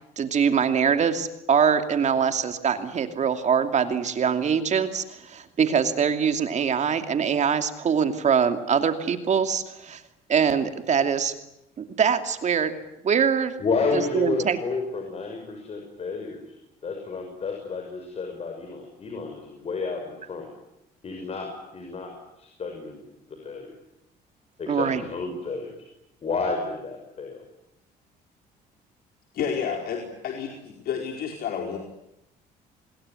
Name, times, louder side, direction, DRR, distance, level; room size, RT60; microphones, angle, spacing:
voice 1, 0.2-10.0 10.3-11.3 11.8-12.7 13.0-13.5 13.9-14.6 24.7-25.0, right 7 dB, 45° right, 8 dB, 2.6 m, -23 dB
voice 2, 13.6-16.4 16.8-20.5 21.0-23.7 24.6-25.7 26.2-27.4, left 4 dB, 40° left, 3 dB, 6.3 m, -31 dB
voice 3, 29.3-31.8, left 7 dB, 65° left, 2 dB, 4.7 m, -30 dB
27.5 x 21.5 x 9.6 m, 0.84 s
cardioid pair, 110°, 17 cm